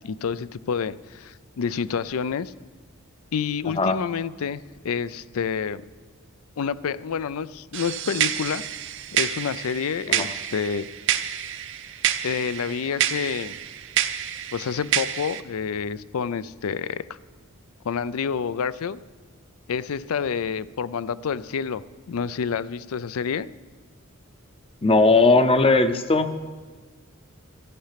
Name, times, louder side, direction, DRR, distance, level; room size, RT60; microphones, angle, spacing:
voice 1, 0.0-2.5 3.3-5.8 6.6-8.7 9.1-10.9 12.2-13.6 14.5-17.1 17.8-19.0 19.7-21.8 22.1-23.5, left 6 dB, 70° left, 17 dB, 0.4 m, -28 dB
sound 1, 7.7-15.4, right 11 dB, 55° right, 0.6 m, -28 dB
voice 2, 24.8-26.3, left 3 dB, 25° left, 10 dB, 0.6 m, -18 dB
13.5 x 11.5 x 5.8 m, 1.5 s
head